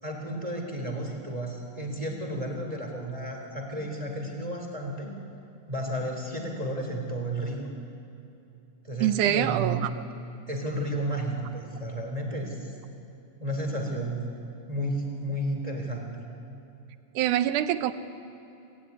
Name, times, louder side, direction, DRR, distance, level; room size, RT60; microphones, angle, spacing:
voice 1, 0.0-5.1 5.7-7.6 8.8-9.9 10.5-12.7 13.4-14.2 14.7-16.1, right 1 dB, 10° right, 2 dB, 3.4 m, -32 dB
voice 2, 9.0-10.0 17.2-17.9, right 11 dB, 85° right, 11 dB, 2.4 m, -25 dB
26.5 x 17.5 x 9.8 m, 2.8 s
omnidirectional pair, 3.5 m